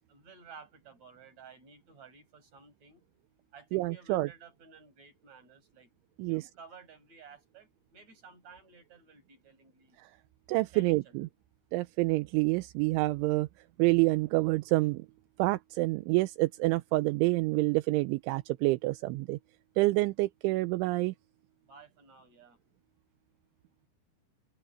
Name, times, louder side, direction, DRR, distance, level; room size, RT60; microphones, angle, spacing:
voice 1, 0.1-3.0 3.5-5.9 6.2-10.0 10.7-11.3 21.6-22.6, right 5 dB, 35° right, 7.7 m, -54 dB
voice 2, 3.7-4.3 6.2-6.5 10.0-10.1 10.5-11.3 11.7-13.5 13.8-15.1 15.4-19.4 19.8-21.1, right 21 dB, 80° right, 3.0 m, -27 dB
omnidirectional pair, 5.8 m